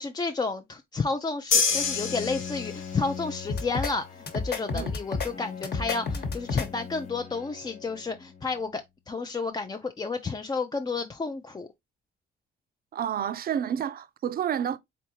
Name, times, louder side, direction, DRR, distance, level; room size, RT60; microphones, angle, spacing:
voice 1, 0.0-11.7, left 4 dB, 20° left, 0.4 m, -31 dB
sound 1, 1.5-3.1, left 5 dB, 85° left, 1.0 m, -26 dB
Bowed string instrument, 1.7-8.8, left 7 dB, 35° left, 0.8 m, -42 dB
sound 2, 3.5-3.9 4.3-5.3 5.6-6.7, left 4 dB, 55° left, 1.1 m, -30 dB
voice 2, 12.9-14.8, right 9 dB, 50° right, 0.5 m, -29 dB
3.9 x 3.4 x 2.8 m
cardioid pair, 90°, 20 cm